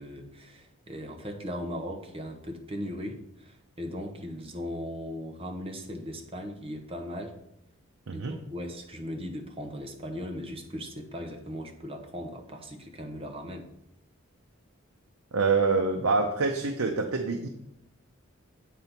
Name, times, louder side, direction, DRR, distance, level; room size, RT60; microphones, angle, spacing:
voice 1, 0.0-7.3 8.1-13.7, equal, 25° right, 4 dB, 0.9 m, -38 dB
voice 2, 15.3-17.5, right 4 dB, 85° right, 4 dB, 0.7 m, -26 dB
8.3 x 4.0 x 5.9 m, 0.80 s
head